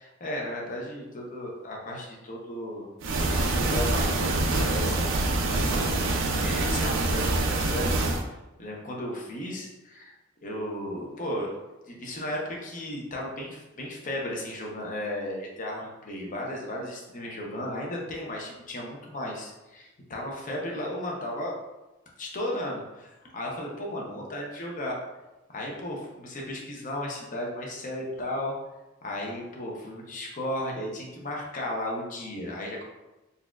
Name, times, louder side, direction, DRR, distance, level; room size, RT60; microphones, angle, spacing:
voice 1, 0.0-2.9 3.2-8.0 8.6-10.1 10.4-11.5 11.9-21.5 22.2-25.0 25.5-28.5 29.0-32.9, left 1 dB, 40° left, -2 dB, 0.7 m, -35 dB
sound 1, 3.0-8.2, right 2 dB, 65° right, 0.4 m, -25 dB
4.0 x 2.3 x 2.3 m, 1.0 s
head